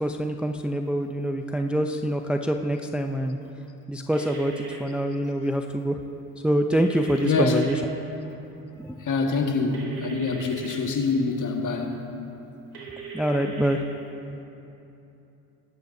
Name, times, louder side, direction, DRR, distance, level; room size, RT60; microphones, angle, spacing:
voice 1, 0.0-3.4 3.9-6.0 6.4-7.8 8.8-8.9 13.1-13.9, right 1 dB, 5° right, 5 dB, 0.6 m, -25 dB
sound 1, 4.1-4.8 6.7-7.7 9.7-10.8 12.7-13.8, right 5 dB, 55° right, 3.5 m, -39 dB
voice 2, 7.2-7.6 9.0-12.0, left 4 dB, 45° left, 2 dB, 1.9 m, -25 dB
22.0 x 11.5 x 2.8 m, 2.9 s
supercardioid pair, 70°, 42 cm